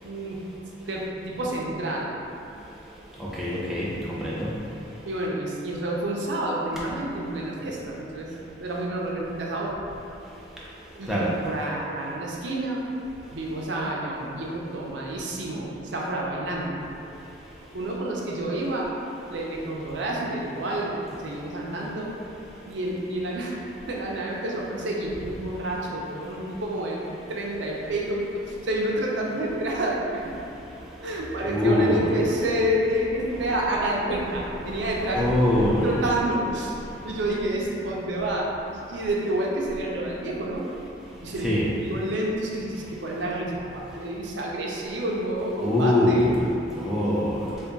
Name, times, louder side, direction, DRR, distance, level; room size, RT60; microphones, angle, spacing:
voice 1, 0.0-0.4 0.9-2.1 5.1-8.3 8.6-9.8 11.0-12.9 13.3-16.8 17.7-18.9 19.3-22.1 22.7-23.5 23.9-30.2 31.0-35.3 35.8-36.8 37.0-40.6 41.2-46.3, right 1 dB, 75° right, -3 dB, 0.5 m, -29 dB
voice 2, 3.4-4.5 11.1-11.3 31.5-32.1 35.1-35.9 41.4-41.7 45.6-46.3 46.8-47.4, left 1 dB, ahead, -8 dB, 0.4 m, -23 dB
3.3 x 2.2 x 3.9 m, 2.7 s
head